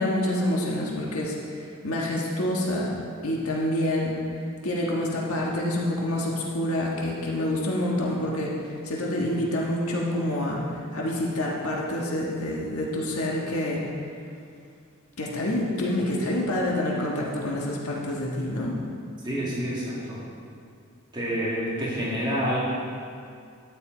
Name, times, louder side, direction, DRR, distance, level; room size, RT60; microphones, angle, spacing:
voice 1, 0.0-2.9 3.2-4.2 4.6-13.8 15.2-18.8, left 1 dB, 80° left, -3 dB, 1.5 m, -27 dB
voice 2, 19.2-20.2 21.1-22.6, equal, 20° right, -7 dB, 2.2 m, -28 dB
12.5 x 9.9 x 3.9 m, 2.4 s
head